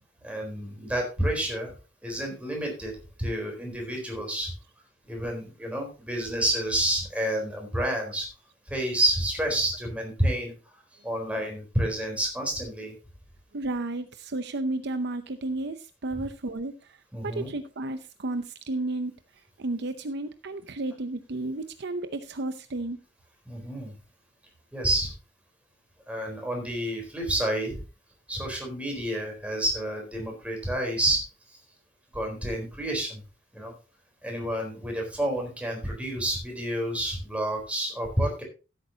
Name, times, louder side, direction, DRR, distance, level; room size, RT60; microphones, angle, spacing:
voice 1, 0.2-1.7 2.0-2.9 3.2-4.5 5.1-8.3 8.7-10.5 11.0-12.9 17.1-17.5 23.5-23.9 24.7-25.1 26.1-27.8 28.3-31.6 32.1-33.2 33.5-33.7 34.2-38.4, right 1 dB, 5° right, 1 dB, 4.0 m, -29 dB
voice 2, 13.5-19.1 19.6-23.0, right 2 dB, 60° right, 10 dB, 0.7 m, -32 dB
15.5 x 8.6 x 2.8 m, 0.31 s
head